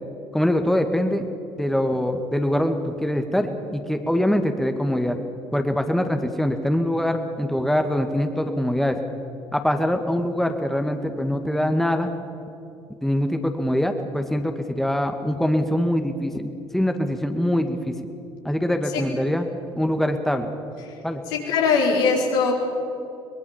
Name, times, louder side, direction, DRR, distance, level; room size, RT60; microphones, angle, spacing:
voice 1, 0.3-1.3 1.6-5.2 5.5-9.0 9.5-12.1 13.0-17.9 18.4-19.5 19.8-20.5 21.0-21.2, left 1 dB, ahead, 6 dB, 2.1 m, -23 dB
voice 2, 21.3-22.5, left 5 dB, 75° left, -1 dB, 4.5 m, -20 dB
23.0 x 21.5 x 7.3 m, 2.6 s
hypercardioid pair, 55°, 13 cm